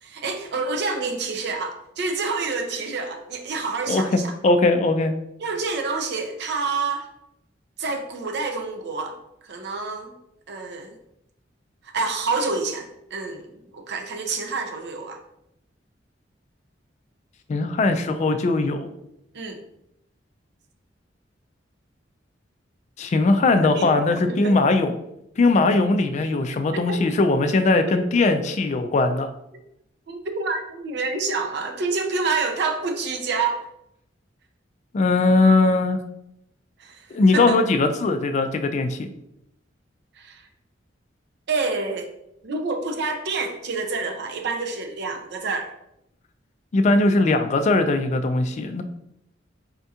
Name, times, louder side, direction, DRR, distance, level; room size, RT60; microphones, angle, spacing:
voice 1, 0.0-4.3 5.4-7.1 7.8-9.2 9.4-10.1 10.5-11.0 11.9-15.2 19.3-19.6 23.7-24.6 26.7-27.0 30.1-33.6 36.8-37.1 37.3-37.6 40.2-40.5 41.5-42.1 42.4-45.7, right 4 dB, 60° right, 5 dB, 0.5 m, -28 dB
voice 2, 3.9-5.1 17.5-18.9 23.0-24.9 25.4-29.3 34.9-36.0 37.1-39.1 46.7-48.8, left 3 dB, 40° left, 7 dB, 0.3 m, -20 dB
4.3 x 2.3 x 2.7 m, 0.81 s
head